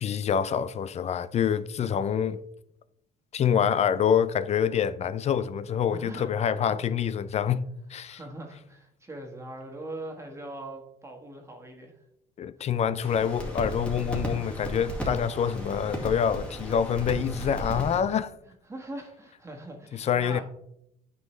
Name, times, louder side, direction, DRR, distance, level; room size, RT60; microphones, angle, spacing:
voice 1, 0.0-2.4 3.3-7.6 7.9-8.2 12.4-18.3 19.9-20.4, left 8 dB, 40° left, 0.4 m, -26 dB
voice 2, 5.9-6.4 6.6-6.8 8.1-11.9 18.5-20.4, right 1 dB, 15° right, 1.6 m, -41 dB
sound 1, 13.0-18.0, right 1 dB, 5° left, 2.0 m, -35 dB
9.4 x 5.4 x 3.2 m
cardioid pair, 110°, 17 cm